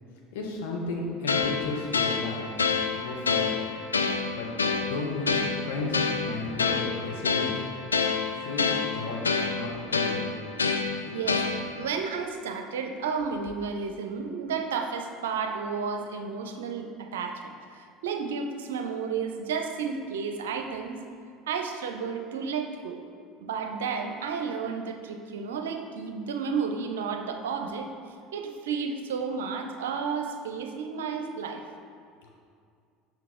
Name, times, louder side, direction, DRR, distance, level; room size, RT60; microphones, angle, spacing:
voice 1, 0.3-2.4 3.0-3.5 4.3-4.5 4.8-5.3 5.6-7.6 8.4-9.2 9.6-10.3, left 3 dB, 70° left, -1 dB, 1.2 m, -33 dB
sound 1, 1.3-11.9, left 5 dB, 90° left, 0.4 m, -28 dB
voice 2, 11.0-11.4 11.8-21.0 21.5-23.0 23.4-27.9 28.3-31.6, right 5 dB, 75° right, 5 dB, 0.5 m, -32 dB
6.6 x 6.2 x 3.7 m, 2.2 s
figure-of-eight pair, 70°, 0 cm